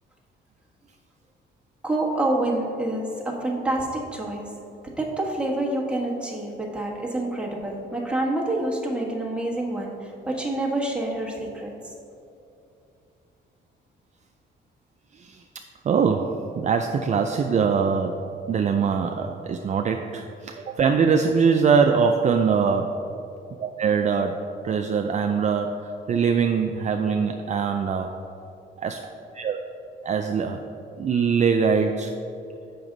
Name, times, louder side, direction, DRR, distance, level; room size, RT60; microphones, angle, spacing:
voice 1, 1.8-4.5 5.0-11.7, right 1 dB, 5° right, -3 dB, 1.4 m, -27 dB
voice 2, 15.8-18.2 18.5-22.9 23.6-25.8 26.1-28.1 28.8-29.0 29.3-29.6 30.0-30.6 31.0-32.1, right 6 dB, 35° right, 4 dB, 0.4 m, -22 dB
7.8 x 6.0 x 3.9 m, 2.7 s
cardioid pair, 90°, 20 cm